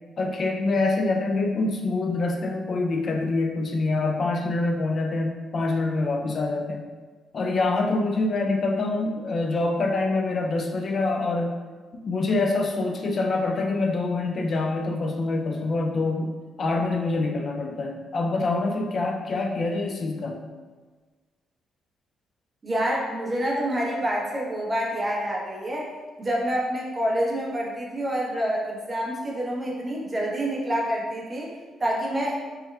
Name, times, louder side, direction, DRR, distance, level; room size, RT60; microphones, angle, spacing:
voice 1, 0.2-6.8 7.3-11.5 12.0-16.3 16.6-20.4, left 3 dB, 45° left, 3 dB, 0.4 m, -25 dB
voice 2, 22.6-25.9 26.2-31.5 31.8-32.4, equal, 25° right, -3 dB, 0.9 m, -27 dB
4.3 x 3.3 x 2.3 m, 1.4 s
cardioid pair, 90°, 0 cm